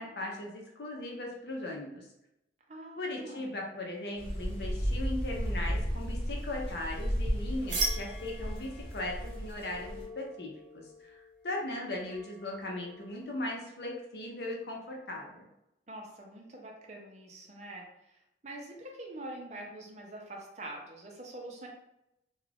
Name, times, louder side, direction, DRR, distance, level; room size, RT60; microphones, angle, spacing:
voice 1, 0.0-2.1 3.0-11.1 11.4-15.5, left 1 dB, 60° left, -1 dB, 0.6 m, -38 dB
voice 2, 2.7-3.5 15.9-18.2 18.4-21.7, right 1 dB, 40° right, 0 dB, 0.5 m, -45 dB
sound 1, 4.2-10.0, equal, 30° left, 1.1 m, -34 dB
sound 2, 7.7-13.2, right 2 dB, 80° right, 0.8 m, -40 dB
2.4 x 2.3 x 3.3 m, 0.84 s
head